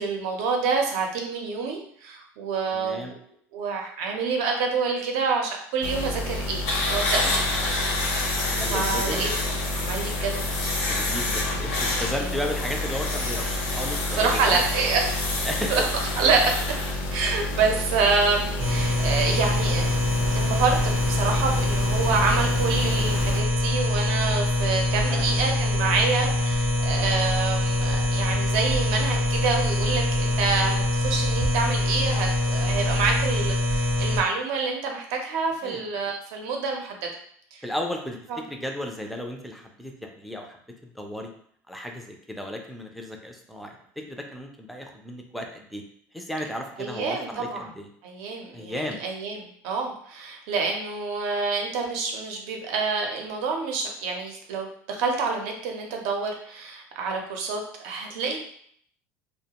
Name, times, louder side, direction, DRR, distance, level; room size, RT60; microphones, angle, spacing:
voice 1, 0.0-3.1 3.5-7.5 8.5-9.3 9.7-10.6 11.2-11.8 12.2-12.3 14.2-15.0 15.7-15.8 16.2-16.5 17.1-20.1 20.3-37.1 37.5-37.6 38.3-38.4 46.8-47.7 48.0-58.4, right 4 dB, 75° right, 2 dB, 0.6 m, -27 dB
voice 2, 2.7-3.1 8.4-9.2 10.9-14.6 15.4-15.7 25.1-25.3 35.6-35.8 37.6-40.6 40.8-41.3 41.7-45.8 46.1-47.9 48.5-49.0, left 1 dB, ahead, 2 dB, 0.3 m, -34 dB
sound 1, 5.8-23.4, left 1 dB, 65° left, 0.4 m, -31 dB
sound 2, 6.6-16.9, left 2 dB, 90° left, 0.8 m, -29 dB
sound 3, 18.6-34.2, left 1 dB, 35° right, 0.6 m, -24 dB
2.3 x 2.1 x 2.8 m, 0.63 s
cardioid pair, 135°, 6 cm